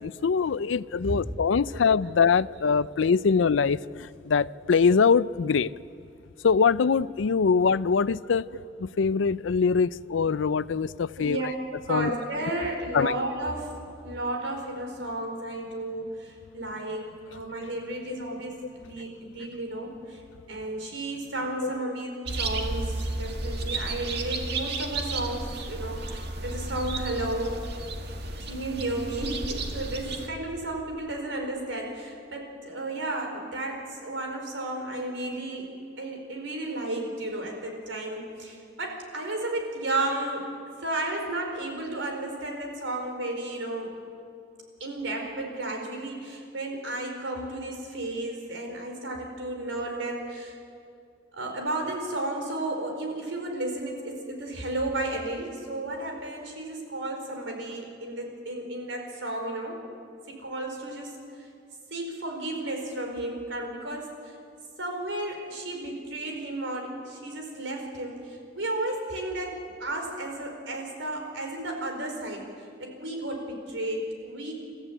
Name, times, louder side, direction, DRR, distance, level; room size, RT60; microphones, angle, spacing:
voice 1, 0.0-5.7 6.4-8.4 8.8-11.4 11.9-12.1 12.9-13.1 21.6-21.7, left 5 dB, 85° left, 18 dB, 0.5 m, -23 dB
voice 2, 1.6-2.1 2.4-2.5 2.8-3.4 7.5-7.6 11.2-11.5 11.9-13.7 14.0-20.2 20.5-27.6 28.4-35.7 36.0-40.4 40.8-43.9 44.8-50.5 51.3-59.8 60.3-61.1 61.9-64.4 64.8-72.5 72.8-74.5, right 1 dB, 90° right, 2 dB, 4.8 m, -33 dB
sound 1, 22.2-30.3, right 2 dB, 60° right, 2.1 m, -33 dB
29.0 x 14.0 x 8.9 m, 2.4 s
head